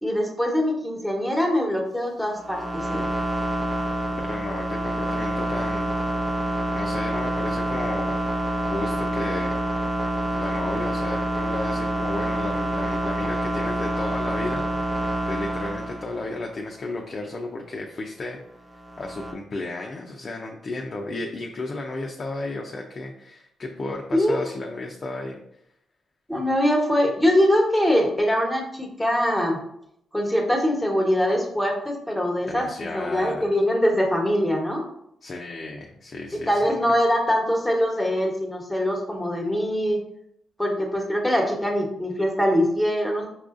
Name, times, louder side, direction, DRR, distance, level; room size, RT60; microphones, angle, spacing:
voice 1, 0.0-3.1 24.1-24.4 26.3-29.6 30.1-34.8 36.5-40.0 40.6-43.3, equal, 5° left, 0 dB, 1.2 m, -23 dB
sound 1, 2.3-16.5 18.7-19.3, right 1 dB, 20° right, 0.7 m, -27 dB
voice 2, 4.2-6.0 6.7-8.2 8.7-9.6 10.4-14.7 15.3-18.4 19.0-25.4 32.5-33.5 35.2-36.6, left 2 dB, 45° left, 0 dB, 0.5 m, -33 dB
5.6 x 2.4 x 2.5 m, 0.74 s
supercardioid pair, 60°, 0 cm